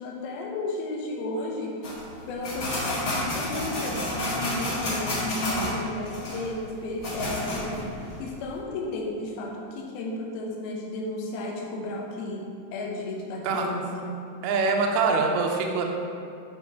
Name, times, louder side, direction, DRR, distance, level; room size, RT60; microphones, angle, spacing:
voice 1, 0.0-1.8 2.3-7.8 8.2-14.1, left 2 dB, 70° left, -1 dB, 2.5 m, -33 dB
sound 1, 1.8-8.4, left 1 dB, 45° left, 1.6 m, -30 dB
voice 2, 14.4-15.9, right 4 dB, 75° right, 1 dB, 2.4 m, -24 dB
12.5 x 5.3 x 3.5 m, 2.4 s
omnidirectional pair, 5.2 m